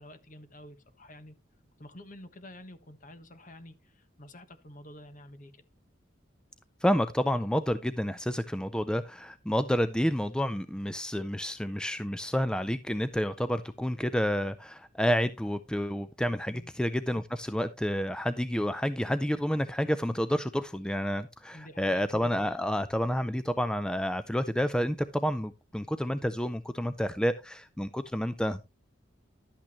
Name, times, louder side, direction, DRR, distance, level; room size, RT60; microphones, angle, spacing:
voice 1, 0.0-1.3 1.8-5.6 16.5-16.7 21.5-22.0, left 1 dB, 45° left, 1.3 m, -49 dB
voice 2, 6.8-28.6, equal, 5° left, 0.4 m, -29 dB
12.0 x 8.6 x 3.0 m
head